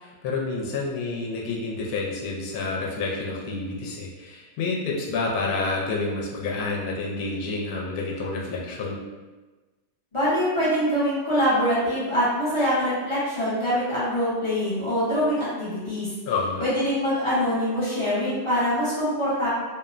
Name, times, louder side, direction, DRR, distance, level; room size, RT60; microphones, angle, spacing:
voice 1, 0.0-9.0 16.3-16.6, left 3 dB, 75° left, -3 dB, 1.0 m, -29 dB
voice 2, 10.1-16.1 16.6-19.5, equal, 40° left, -11 dB, 0.4 m, -24 dB
2.9 x 2.1 x 2.4 m, 1.2 s
omnidirectional pair, 1.7 m